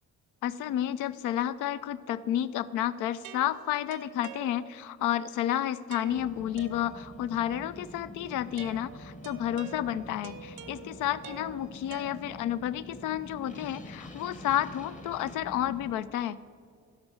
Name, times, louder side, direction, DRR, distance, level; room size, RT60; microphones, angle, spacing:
voice 1, 0.4-16.4, left 11 dB, 85° left, 16 dB, 0.5 m, -31 dB
sound 1, 3.2-5.0 5.9-7.3 8.6-12.7, right 9 dB, 85° right, 0.6 m, -48 dB
sound 2, 6.1-15.9, left 1 dB, 25° left, 1.1 m, -46 dB
12.5 x 5.3 x 6.2 m, 2.2 s
cardioid pair, 90°, 30 cm